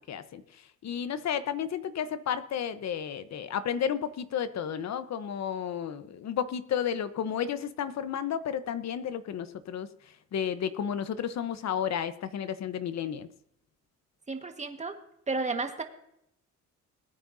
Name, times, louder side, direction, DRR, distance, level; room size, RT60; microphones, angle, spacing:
voice 1, 0.1-0.4 0.8-9.9 10.3-13.3, left 8 dB, 60° left, 12 dB, 1.0 m, -32 dB
voice 2, 14.3-15.0 15.3-15.8, right 3 dB, 25° right, 5 dB, 1.6 m, -32 dB
20.5 x 9.5 x 2.7 m, 0.77 s
cardioid pair, 90°, 30 cm